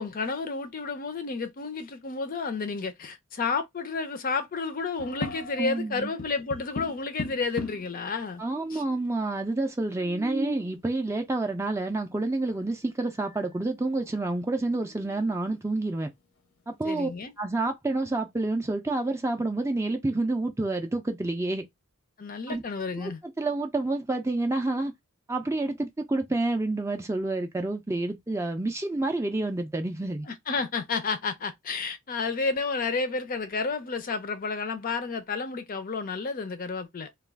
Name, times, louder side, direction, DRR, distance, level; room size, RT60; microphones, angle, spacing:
voice 1, 0.0-8.4 8.7-8.8 16.8-17.3 22.2-23.2 30.3-37.1, left 4 dB, 40° left, 0.5 m, -31 dB
sound 1, 5.0-5.8 6.2-8.0 8.7-8.8 9.0-9.1 9.8-10.7 12.5-12.6 13.1-13.6 14.0-14.1 14.6-15.5, left 1 dB, 75° left, 0.7 m, -38 dB
voice 2, 5.6-6.1 8.4-16.1 16.7-17.1 17.4-21.6 22.5-22.6 23.0-23.1 23.4-24.9 25.3-30.3, right 2 dB, 15° right, 0.4 m, -28 dB
2.3 x 2.3 x 3.3 m
head